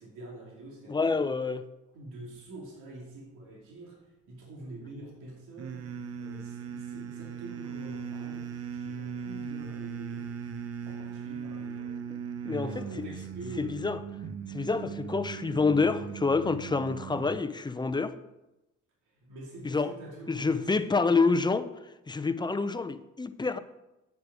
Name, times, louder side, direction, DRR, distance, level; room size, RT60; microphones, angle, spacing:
voice 1, 0.0-1.3 1.9-4.0 4.3-5.9 6.2-10.3 10.8-11.9 12.5-13.9 14.6-14.9 19.1-20.7, right 2 dB, 85° right, 2.7 m, -46 dB
voice 2, 0.9-1.6 12.1-12.2 12.4-12.7 13.0-13.1 13.6-14.0 14.5-18.1 19.6-19.9 20.3-23.6, left 4 dB, 15° left, 0.7 m, -28 dB
sound 1, 5.6-17.5, right 7 dB, 50° right, 0.9 m, -39 dB
10.0 x 8.4 x 4.9 m
cardioid pair, 90°, 30 cm